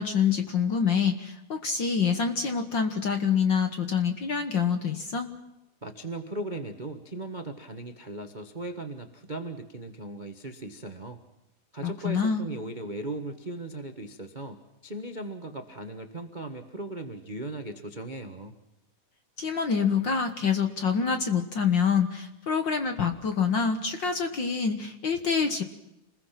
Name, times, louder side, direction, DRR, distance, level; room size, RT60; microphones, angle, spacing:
voice 1, 0.0-5.3 11.8-12.5 19.4-25.6, left 6 dB, 50° left, 7 dB, 1.5 m, -26 dB
voice 2, 5.8-11.2 11.7-14.6 14.8-18.5, right 2 dB, 40° right, 6 dB, 0.6 m, -38 dB
28.0 x 21.0 x 5.9 m, 0.91 s
omnidirectional pair, 3.6 m